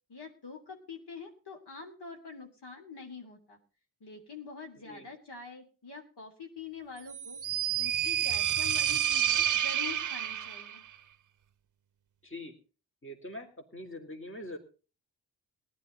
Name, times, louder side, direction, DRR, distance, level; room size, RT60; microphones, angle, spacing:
voice 1, 0.1-3.6 4.0-7.4 7.7-10.8, left 5 dB, 60° left, 3 dB, 3.3 m, -45 dB
sound 1, 7.0-10.8, right 10 dB, 40° right, 0.8 m, -29 dB
voice 2, 12.2-12.5 13.0-14.6, left 1 dB, 25° left, 4 dB, 3.5 m, -43 dB
18.5 x 11.5 x 4.0 m, 0.36 s
hypercardioid pair, 45°, 45 cm